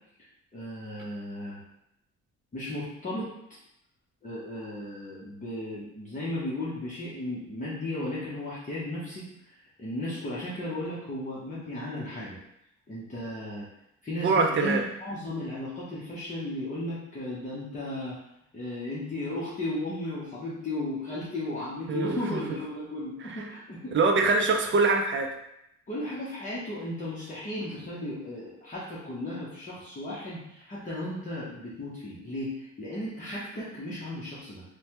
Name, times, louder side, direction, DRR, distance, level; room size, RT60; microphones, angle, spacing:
voice 1, 0.5-1.6 2.5-3.3 4.2-12.4 12.9-13.7 14.0-18.2 18.5-24.0 25.9-34.6, left 1 dB, 25° left, -9 dB, 0.8 m, -35 dB
voice 2, 14.2-14.8 21.9-22.4 23.2-23.4 23.9-25.3, right 3 dB, 40° right, 3 dB, 0.5 m, -24 dB
3.1 x 2.2 x 2.9 m, 0.80 s
cardioid pair, 90°, 30 cm